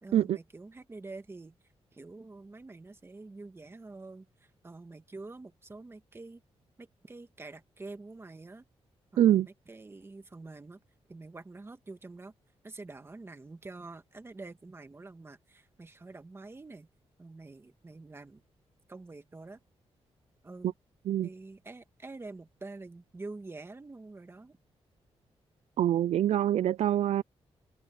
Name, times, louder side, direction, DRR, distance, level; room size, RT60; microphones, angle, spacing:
voice 1, 0.0-1.5 1.9-6.4 6.8-8.6 9.3-10.8 11.1-12.3 12.6-16.9 17.2-18.4 18.9-19.6 20.4-20.7 21.2-24.6, right 3 dB, 20° right, 1.8 m, -46 dB
voice 2, 25.8-27.2, right 11 dB, 75° right, 0.4 m, -25 dB
wide cardioid pair, 125°, 11 cm